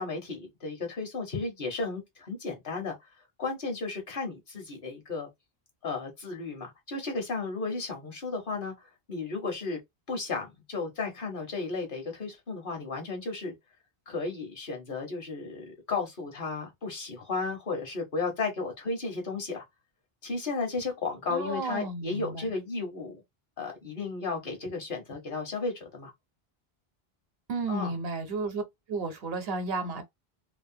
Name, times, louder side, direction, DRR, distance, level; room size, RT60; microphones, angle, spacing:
voice 1, 0.0-3.1 3.4-5.3 5.8-9.8 10.1-13.5 14.1-19.6 20.2-23.2 23.6-26.1 27.7-27.9, left 3 dB, 60° left, 1.2 m, -34 dB
voice 2, 21.3-22.5 27.5-28.6 28.9-30.0, right 3 dB, 75° right, 1.0 m, -32 dB
2.9 x 2.1 x 2.6 m
omnidirectional pair, 1.0 m